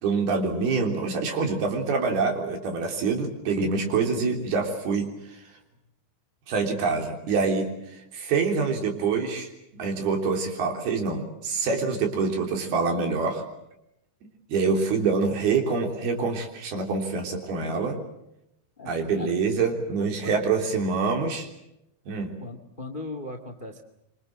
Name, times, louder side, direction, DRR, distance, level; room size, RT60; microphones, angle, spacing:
voice 1, 0.0-5.4 6.5-13.4 14.5-18.0 18.9-21.5 22.1-22.4, right 4 dB, 70° right, 4 dB, 5.3 m, -26 dB
voice 2, 18.8-19.4 20.2-20.4 22.4-23.8, left 2 dB, 25° left, 8 dB, 1.1 m, -38 dB
26.0 x 25.0 x 7.7 m, 0.82 s
omnidirectional pair, 4.7 m